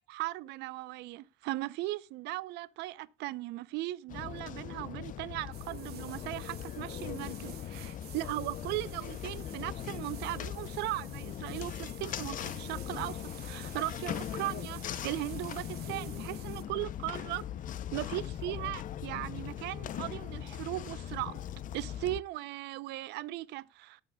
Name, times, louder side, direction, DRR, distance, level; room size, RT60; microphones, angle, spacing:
voice 1, 0.1-17.4 17.9-21.4 21.7-24.0, right 17 dB, 85° right, 0.6 m, -38 dB
sound 1, 4.1-22.2, left 10 dB, 50° left, 0.6 m, -40 dB
sound 2, 5.5-16.6, right 12 dB, 70° right, 1.4 m, -52 dB
19.0 x 8.2 x 2.2 m
cardioid pair, 110°, 17 cm